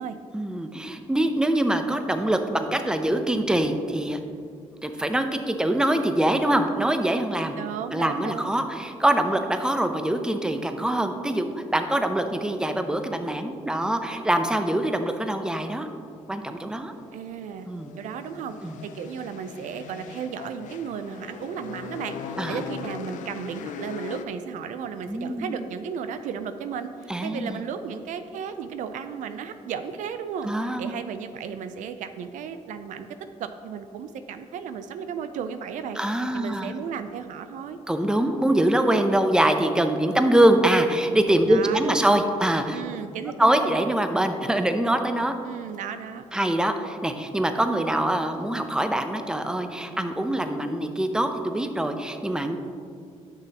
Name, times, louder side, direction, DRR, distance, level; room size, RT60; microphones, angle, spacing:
voice 1, 0.3-4.2 4.8-7.6 7.9-15.9 16.3-16.9 17.6-17.9 18.6-18.8 22.4-22.6 25.1-25.5 27.1-27.6 30.4-30.9 36.0-36.7 37.9-42.8 43.4-45.3 46.3-52.6, right 1 dB, 5° right, 7 dB, 0.6 m, -24 dB
voice 2, 7.6-8.5 17.1-17.7 18.0-18.6 18.8-33.1 33.4-36.0 36.3-37.8 41.5-42.3 42.7-43.9 45.4-46.2, right 7 dB, 80° right, 9 dB, 0.4 m, -34 dB
sound 1, 16.7-24.2, left 6 dB, 80° left, 0.4 m, -39 dB
9.6 x 6.1 x 2.9 m, 2.3 s
cardioid pair, 70°, 13 cm